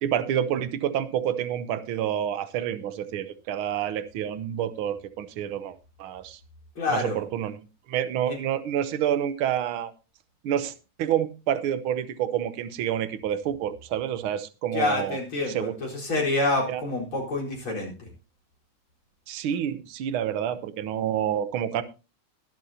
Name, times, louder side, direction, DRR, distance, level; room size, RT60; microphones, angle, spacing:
voice 1, 0.0-6.4 6.9-7.6 7.9-9.9 10.4-10.7 11.0-15.2 15.5-15.7 16.7-16.8 19.3-21.8, right 10 dB, 70° right, 13 dB, 1.3 m, -28 dB
voice 2, 6.8-7.2 8.3-8.4 14.7-18.1, left 2 dB, 45° left, -2 dB, 5.1 m, -27 dB
21.5 x 7.7 x 2.8 m, 0.31 s
omnidirectional pair, 3.4 m